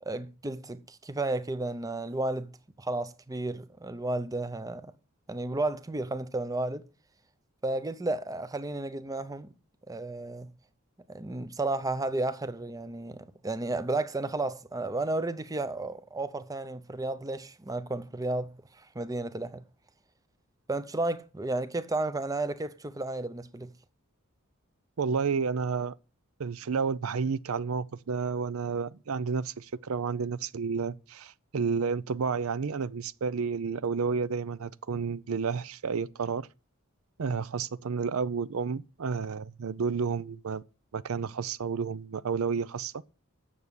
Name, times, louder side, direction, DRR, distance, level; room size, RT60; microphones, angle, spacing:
voice 1, 0.0-2.5 2.8-4.9 5.3-6.9 7.6-9.5 9.9-10.5 11.1-19.6 20.7-23.7, right 2 dB, 15° right, 0.7 m, -33 dB
voice 2, 25.0-26.0 26.4-36.5 37.2-40.6 40.9-43.0, right 5 dB, 70° right, 0.5 m, -31 dB
9.3 x 6.9 x 8.1 m
head